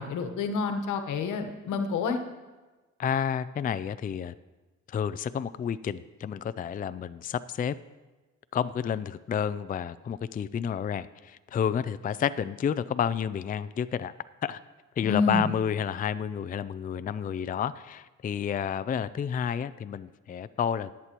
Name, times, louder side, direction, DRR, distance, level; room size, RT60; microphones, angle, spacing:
voice 1, 0.0-2.2 15.0-15.5, left 4 dB, 80° left, 7 dB, 1.2 m, -28 dB
voice 2, 3.0-4.3 4.9-7.7 8.5-14.1 14.4-14.6 15.0-20.9, left 8 dB, 30° left, 14 dB, 0.4 m, -30 dB
20.5 x 8.3 x 3.0 m, 1.2 s
cardioid pair, 90°, 30 cm